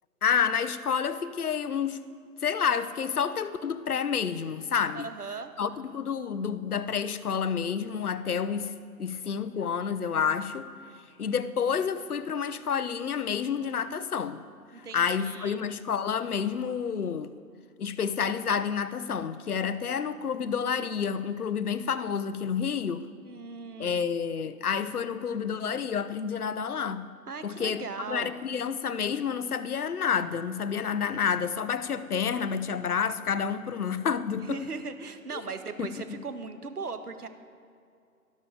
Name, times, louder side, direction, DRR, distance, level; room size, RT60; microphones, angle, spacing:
voice 1, 0.2-2.0 2.4-5.1 5.6-8.7 9.0-10.7 11.2-14.4 14.9-17.3 17.8-23.1 23.8-27.1 27.4-34.6 35.8-36.2, left 7 dB, 70° left, 13 dB, 0.8 m, -29 dB
voice 2, 4.9-5.5 14.7-15.7 23.2-24.0 27.3-28.3 34.4-37.3, right 4 dB, 75° right, 9 dB, 1.4 m, -38 dB
12.5 x 12.0 x 5.1 m, 2.4 s
figure-of-eight pair, 155°, 46 cm